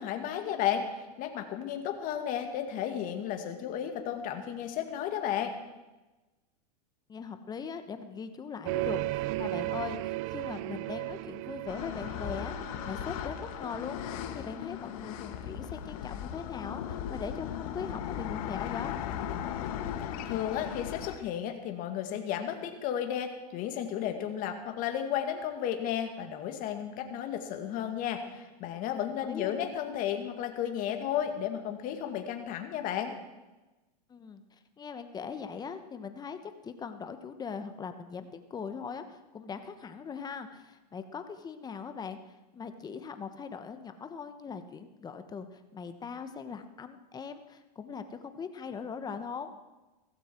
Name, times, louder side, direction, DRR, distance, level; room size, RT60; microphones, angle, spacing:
voice 1, 0.0-5.5 20.0-33.2, left 9 dB, 40° left, 5 dB, 2.2 m, -33 dB
voice 2, 7.1-18.9 29.3-29.7 34.1-42.2 42.5-49.5, left 6 dB, 20° left, 9 dB, 1.2 m, -40 dB
sound 1, 8.7-14.3, right 19 dB, 50° right, 0.5 m, -36 dB
sound 2, 11.7-21.2, left 9 dB, 60° left, 1.4 m, -37 dB
16.5 x 15.5 x 4.6 m, 1.1 s
hypercardioid pair, 120°, 21 cm